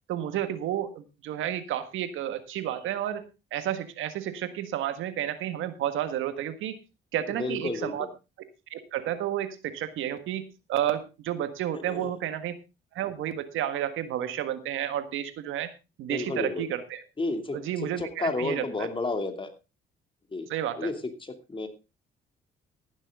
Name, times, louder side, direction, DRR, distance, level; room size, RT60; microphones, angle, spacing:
voice 1, 0.1-3.2 3.5-6.8 7.1-8.1 8.7-10.4 10.7-12.5 12.9-15.7 16.0-17.0 17.5-18.9 20.5-20.9, right 11 dB, 85° right, 11 dB, 1.6 m, -31 dB
voice 2, 7.4-7.9 11.7-12.1 16.1-16.7 17.2-17.6 18.0-19.5 20.3-20.5 20.8-20.9 21.2-21.7, left 3 dB, 25° left, 7 dB, 2.7 m, -31 dB
14.5 x 11.5 x 3.6 m, 0.28 s
cardioid pair, 90°, 20 cm